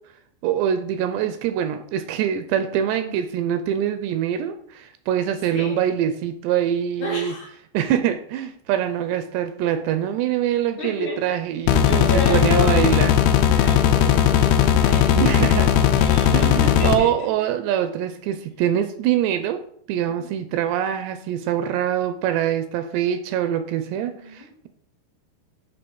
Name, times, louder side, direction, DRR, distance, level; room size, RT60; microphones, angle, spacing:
voice 1, 0.4-7.3 7.7-13.2 15.1-15.7 16.3-19.6 19.9-24.7, right 10 dB, 85° right, 9 dB, 2.6 m, -24 dB
voice 2, 7.0-7.5 10.8-11.2 11.8-13.1 13.5-17.5 20.0-20.3 23.9-24.5, left 2 dB, 60° left, -5 dB, 2.4 m, -32 dB
sound 1, 11.7-17.0, left 9 dB, 85° left, 2.2 m, -17 dB
7.0 x 3.2 x 5.9 m, 0.64 s
omnidirectional pair, 5.0 m